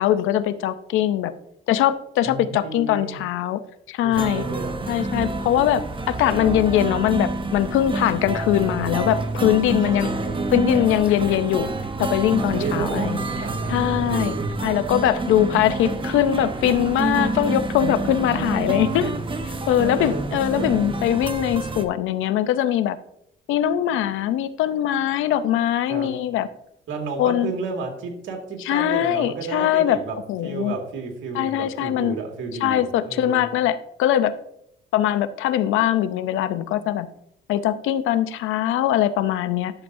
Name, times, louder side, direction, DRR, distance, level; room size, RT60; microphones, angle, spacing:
voice 1, 0.0-1.3 1.7-3.6 3.9-4.4 4.9-5.8 6.1-10.1 10.5-11.7 12.0-13.2 13.7-14.3 14.6-19.1 19.4-23.0 23.5-26.5 27.2-27.5 28.7-30.0 30.3-30.7 31.3-32.2 32.6-34.3 34.9-37.1 37.5-39.7, left 11 dB, 90° left, 13 dB, 0.6 m, -21 dB
voice 2, 2.2-3.2 4.0-5.7 9.7-10.5 12.4-14.7 17.8-19.2 19.7-21.0 25.9-26.2 26.9-30.2 30.4-33.5, right 4 dB, 80° right, 2 dB, 2.0 m, -32 dB
sound 1, 4.1-21.8, right 2 dB, 25° right, 0.9 m, -28 dB
11.5 x 6.9 x 2.6 m, 0.74 s
cardioid pair, 90°, 20 cm